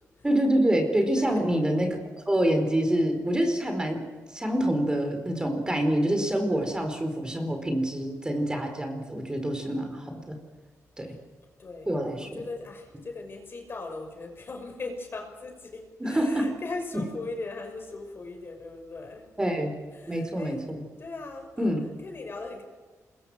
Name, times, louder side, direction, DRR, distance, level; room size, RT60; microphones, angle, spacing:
voice 1, 0.2-10.4 11.0-11.1 11.9-12.4 16.0-16.6 16.9-17.0 19.4-19.7 20.1-20.9 21.6-21.8, right 1 dB, 15° right, 5 dB, 4.6 m, -26 dB
voice 2, 1.2-1.5 6.6-6.8 11.6-19.2 20.0-20.6 21.0-21.7 22.0-22.6, left 3 dB, 40° left, 4 dB, 5.6 m, -39 dB
27.0 x 22.0 x 6.4 m, 1.4 s
cardioid pair, 115°, 6 cm